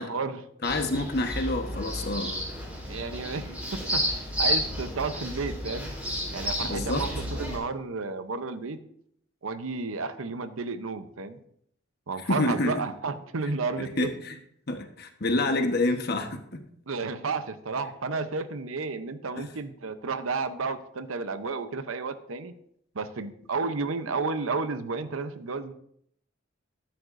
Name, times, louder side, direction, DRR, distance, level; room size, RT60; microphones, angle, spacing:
voice 1, 0.0-0.5 2.9-5.9 6.3-8.8 9.4-11.4 12.1-14.1 16.9-22.5 22.9-25.7, right 4 dB, 85° right, 11 dB, 0.7 m, -32 dB
voice 2, 0.6-2.4 6.6-7.1 12.3-12.8 13.8-14.3 14.7-16.6, left 2 dB, 50° left, 5 dB, 1.1 m, -28 dB
sound 1, 0.6-7.6, equal, 5° right, 3.9 m, -32 dB
13.0 x 10.5 x 2.6 m, 0.69 s
head